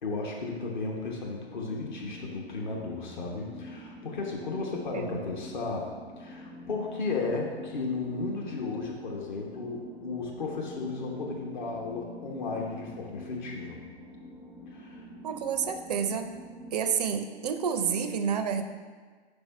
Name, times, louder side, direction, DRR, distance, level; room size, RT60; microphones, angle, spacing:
voice 1, 0.0-5.9 6.2-13.8 14.7-15.0, left 3 dB, 45° left, -1 dB, 0.9 m, -34 dB
sound 1, 1.6-16.9, left 1 dB, 65° left, 1.7 m, -46 dB
voice 2, 15.2-16.3 16.7-18.6, right 7 dB, 40° right, 8 dB, 0.4 m, -29 dB
5.3 x 4.5 x 4.3 m, 1.5 s
figure-of-eight pair, 120°, 33 cm